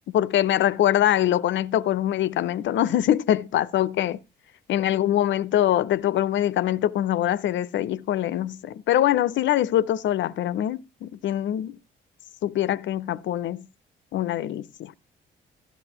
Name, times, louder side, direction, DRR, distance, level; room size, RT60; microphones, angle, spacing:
voice 1, 0.1-4.2 4.7-11.8 12.4-13.7 14.1-14.9, left 12 dB, 70° left, 0.6 m, -23 dB
12.0 x 11.0 x 2.9 m
cardioid pair, 90°, 20 cm